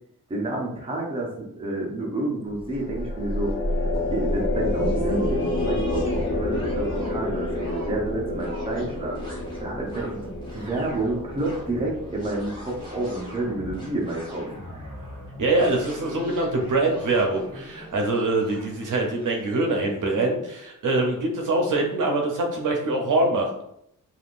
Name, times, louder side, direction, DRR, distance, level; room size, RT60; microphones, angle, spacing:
voice 1, 0.3-3.5 3.8-9.2 9.6-14.5 14.7-14.9, right 2 dB, 15° right, -3 dB, 0.6 m, -29 dB
sound 1, 2.5-13.9, left 1 dB, 35° left, 0.6 m, -29 dB
sound 2, 2.7-19.8, left 1 dB, 15° left, 1.0 m, -41 dB
voice 2, 15.4-23.6, right 2 dB, 70° right, 1 dB, 0.7 m, -24 dB
3.4 x 2.4 x 2.4 m, 0.76 s
wide cardioid pair, 125°, 33 cm